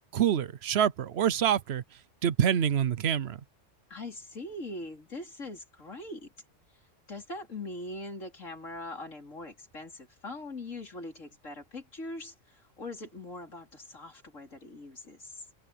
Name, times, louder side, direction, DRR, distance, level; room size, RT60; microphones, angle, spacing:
voice 1, 0.1-1.8 2.2-3.4, right 9 dB, 60° right, 0.9 m, -26 dB
voice 2, 3.9-6.3 7.1-15.5, left 2 dB, 85° left, 4.5 m, -42 dB
omnidirectional pair, 1.3 m